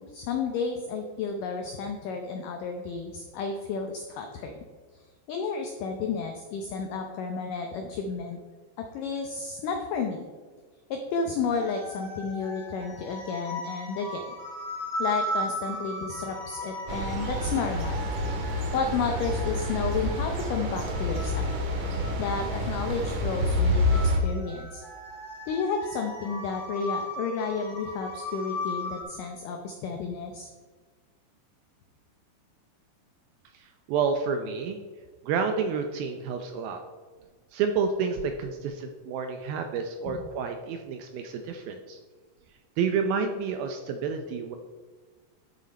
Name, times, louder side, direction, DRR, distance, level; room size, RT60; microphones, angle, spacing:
voice 1, 0.1-4.5 4.9-8.4 8.8-10.3 10.9-14.3 15.0-18.1 18.7-21.5 22.2-24.8 25.5-30.5 40.0-40.2, left 5 dB, 90° left, 4 dB, 1.8 m, -32 dB
sound 1, 11.5-29.0, equal, 60° left, 4.9 m, -38 dB
sound 2, 16.9-24.2, left 1 dB, 60° right, 2.6 m, -28 dB
voice 2, 33.5-34.8 35.2-36.8 37.5-42.0 42.8-44.6, right 5 dB, 80° right, 5 dB, 2.2 m, -29 dB
12.5 x 6.7 x 4.2 m, 1.4 s
omnidirectional pair, 4.9 m